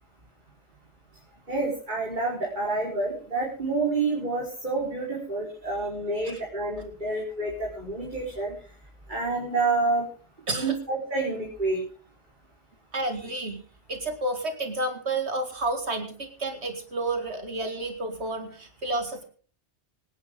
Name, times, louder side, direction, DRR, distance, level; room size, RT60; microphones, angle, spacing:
voice 1, 1.5-8.5 9.1-10.0 10.5-11.8, right 3 dB, 40° right, -4 dB, 4.7 m, -28 dB
voice 2, 12.9-13.6 13.9-19.2, right 2 dB, 70° right, 6 dB, 2.3 m, -30 dB
25.0 x 10.5 x 3.7 m, 0.41 s
omnidirectional pair, 1.2 m